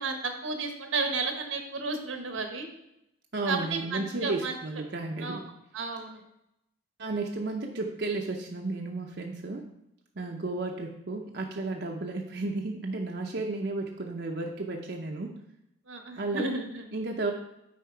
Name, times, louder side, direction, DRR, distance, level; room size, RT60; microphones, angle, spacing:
voice 1, 0.0-2.7 3.5-4.5 5.2-5.4 5.7-6.2 15.9-16.9, right 3 dB, 80° right, 5 dB, 1.2 m, -32 dB
voice 2, 3.3-5.4 7.0-9.7 10.2-15.4 16.2-16.4 16.9-17.3, right 2 dB, 55° right, 1 dB, 0.7 m, -33 dB
8.4 x 4.7 x 4.5 m, 0.85 s
head